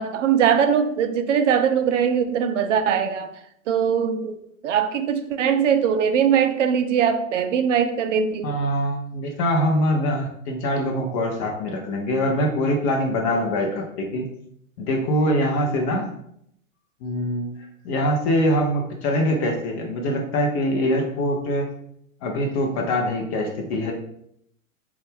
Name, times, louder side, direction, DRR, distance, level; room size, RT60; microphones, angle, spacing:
voice 1, 0.0-3.3 3.7-8.6, right 7 dB, 60° right, 9 dB, 0.5 m, -21 dB
voice 2, 8.4-14.3 14.8-16.1 17.0-17.5 17.8-21.7 22.2-23.9, equal, 25° left, 1 dB, 0.4 m, -23 dB
3.8 x 2.3 x 3.4 m, 0.72 s
hypercardioid pair, 115°, 42 cm